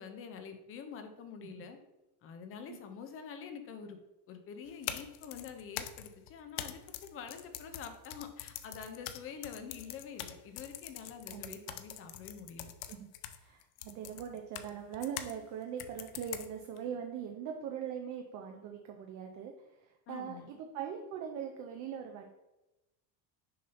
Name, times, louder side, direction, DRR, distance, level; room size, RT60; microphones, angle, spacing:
voice 1, 0.0-1.8 2.2-4.0 4.3-12.7 20.1-20.5, left 6 dB, 30° left, 7 dB, 0.6 m, -46 dB
sound 1, 4.7-15.4 15.8-16.8, left 11 dB, 75° left, 0.7 m, -44 dB
voice 2, 12.9-19.5 19.8-22.3, right 8 dB, 40° right, 3 dB, 0.5 m, -41 dB
6.5 x 2.7 x 5.5 m, 1.0 s
cardioid pair, 170°, 47 cm